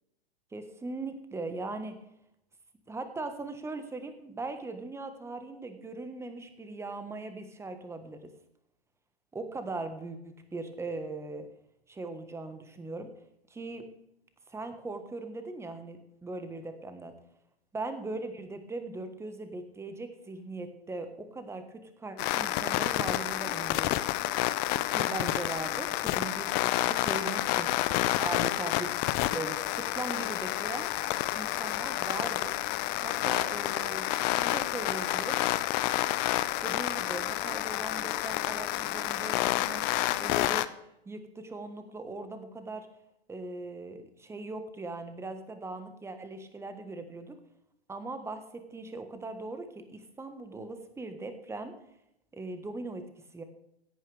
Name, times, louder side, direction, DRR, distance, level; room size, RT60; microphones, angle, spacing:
voice 1, 0.5-2.0 2.9-8.2 9.3-11.5 11.9-13.1 13.5-13.8 14.5-17.1 17.7-24.0 24.9-27.8 28.2-28.9 29.3-30.9 31.3-32.6 33.0-35.4 36.6-40.6 41.0-42.9 43.3-47.4 47.9-51.7 52.3-53.0 53.3-53.4, right 3 dB, 10° right, 8 dB, 1.4 m, -39 dB
sound 1, 22.2-40.7, left 16 dB, 30° left, 0.6 m, -29 dB
16.5 x 9.2 x 3.5 m, 0.80 s
hypercardioid pair, 115°, 31 cm